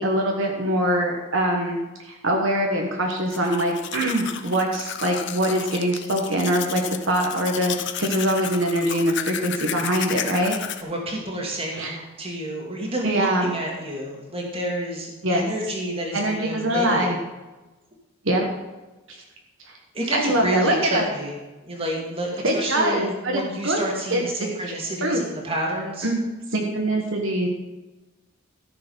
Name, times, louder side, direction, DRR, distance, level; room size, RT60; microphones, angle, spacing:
voice 1, 0.0-1.8 2.0-10.6 11.7-12.0 13.0-13.6 15.2-15.4 16.1-17.2 18.2-18.5 19.1-19.2 19.6-19.8 20.1-21.1 22.4-23.8 24.1-24.5 25.0-25.2 26.0-26.2 26.5-27.5, right 1 dB, 60° right, 1 dB, 1.4 m, -23 dB
Domestic sounds home sounds, 3.1-10.8, left 9 dB, 55° left, 0.7 m, -33 dB
voice 2, 10.8-17.1 19.9-21.4 21.6-26.1, right 1 dB, 25° right, -1 dB, 2.2 m, -29 dB
14.0 x 6.8 x 5.5 m, 1.1 s
head